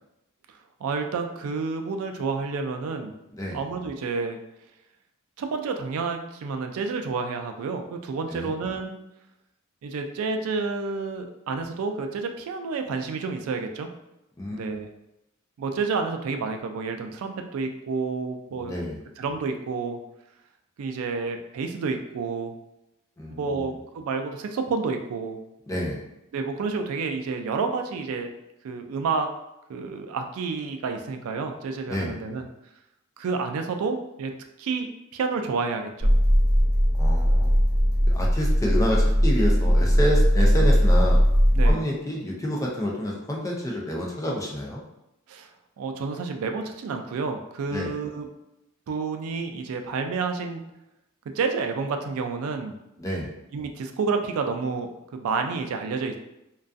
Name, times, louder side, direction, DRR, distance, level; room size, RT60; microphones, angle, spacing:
voice 1, 0.5-3.1 3.5-4.4 5.4-9.0 9.8-13.9 14.5-14.9 15.6-18.7 19.2-20.0 20.8-22.5 23.3-25.4 26.3-28.3 28.6-29.3 29.7-32.5 33.2-34.3 34.6-36.1 41.5-41.8 45.3-45.5 45.8-48.3 48.9-50.6 51.3-52.8 53.5-56.2, right 4 dB, 90° right, 6 dB, 0.3 m, -29 dB
voice 2, 14.4-14.8 18.6-19.0 23.2-23.7 25.7-26.0 31.9-32.1 37.0-37.5 38.1-41.2 41.6-44.8 47.7-47.9 53.0-53.3, equal, 15° left, -2 dB, 0.4 m, -29 dB
sound 1, 36.0-41.7, equal, 85° left, 0.7 m, -19 dB
2.3 x 2.3 x 2.5 m, 0.87 s
head